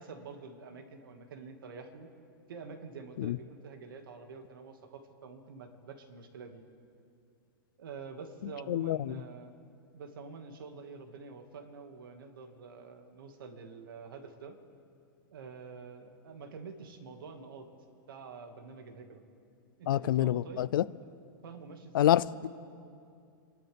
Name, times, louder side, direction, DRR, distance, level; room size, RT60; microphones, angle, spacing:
voice 1, 0.0-2.1 2.5-6.6 7.8-9.5 9.9-14.6 15.3-17.7 18.1-19.2 19.8-20.7 21.0-21.1 21.4-22.2, right 5 dB, 80° right, 5 dB, 2.0 m, -47 dB
voice 2, 8.7-9.2 19.9-20.9 21.9-22.5, left 12 dB, 75° left, 18 dB, 0.5 m, -27 dB
29.0 x 12.0 x 3.5 m, 2.5 s
supercardioid pair, 150°, 11 cm